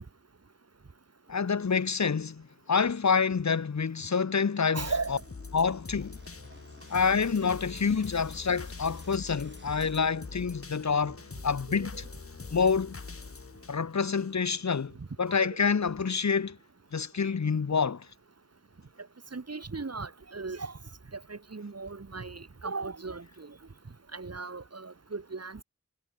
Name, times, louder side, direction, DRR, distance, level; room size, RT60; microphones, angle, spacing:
voice 1, 1.3-4.8 5.1-5.2 5.5-6.2 6.9-12.0 12.5-13.0 13.7-16.6 16.9-18.1, left 5 dB, 65° left, 1.4 m, -27 dB
sound 1, 4.3-9.9, right 2 dB, 40° right, 4.6 m, -58 dB
voice 2, 4.7-5.2 11.9-12.0 15.4-15.5 19.3-20.7 21.3-23.5 24.1-25.6, right 4 dB, 55° right, 4.4 m, -37 dB
sound 2, 4.8-14.8 15.3-15.4, left 4 dB, 50° left, 1.7 m, -44 dB
wide cardioid pair, 65°, 30 cm